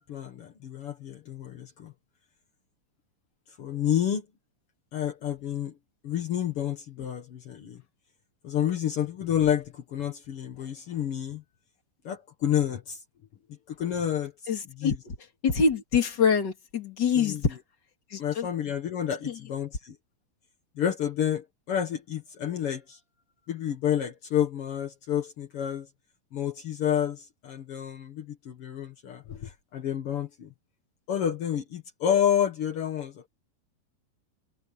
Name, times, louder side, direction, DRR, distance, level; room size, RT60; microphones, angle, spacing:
voice 1, 0.0-1.9 3.5-4.2 4.9-5.7 6.0-7.8 8.4-11.4 12.0-13.0 13.7-14.5 14.8-15.0 17.1-17.4 18.2-19.9 20.8-23.0 23.5-25.9 26.3-30.5 31.1-33.3, left 10 dB, 60° left, 1.6 m, -29 dB
voice 2, 14.5-15.1 15.4-17.6 18.1-18.5 19.2-19.3, left 5 dB, 35° left, 2.4 m, -25 dB
omnidirectional pair, 4.5 m